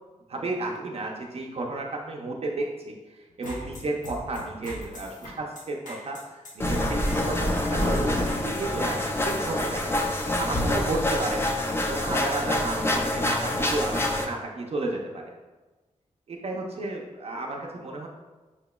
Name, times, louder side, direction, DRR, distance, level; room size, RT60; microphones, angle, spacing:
voice 1, 0.3-7.0 7.7-10.1 10.4-11.4 11.9-15.2 16.3-18.1, right 2 dB, 50° right, -1 dB, 0.5 m, -32 dB
sound 1, 3.3-9.5, left 1 dB, 80° left, 0.9 m, -42 dB
sound 2, 6.6-14.2, left 1 dB, 20° left, 0.4 m, -26 dB
5.5 x 2.9 x 2.2 m, 1.2 s
wide cardioid pair, 140°, 13 cm